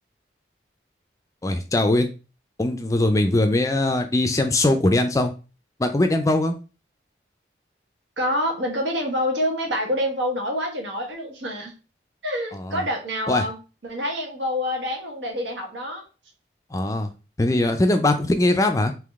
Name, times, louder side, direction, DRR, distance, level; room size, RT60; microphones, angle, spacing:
voice 1, 1.4-2.1 2.6-5.3 5.8-6.6 12.5-12.8 13.3-13.4 16.7-17.1 17.4-18.9, left 2 dB, 20° left, 7 dB, 0.4 m, -21 dB
voice 2, 8.2-11.7 12.2-13.6 13.8-16.0, equal, 85° right, 2 dB, 1.3 m, -27 dB
3.7 x 2.9 x 3.5 m, 0.32 s
head